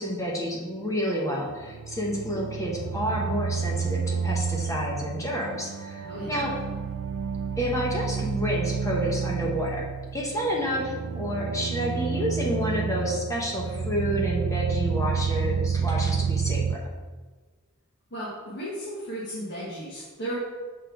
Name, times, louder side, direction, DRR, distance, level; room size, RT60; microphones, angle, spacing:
voice 1, 0.0-6.6 7.6-16.8, equal, 15° left, -2 dB, 0.9 m, -29 dB
sound 1, 1.5-16.8, right 6 dB, 65° right, 0.3 m, -30 dB
voice 2, 6.0-6.5 18.1-20.3, right 1 dB, 55° left, -8 dB, 1.4 m, -35 dB
6.4 x 4.1 x 4.7 m, 1.4 s
head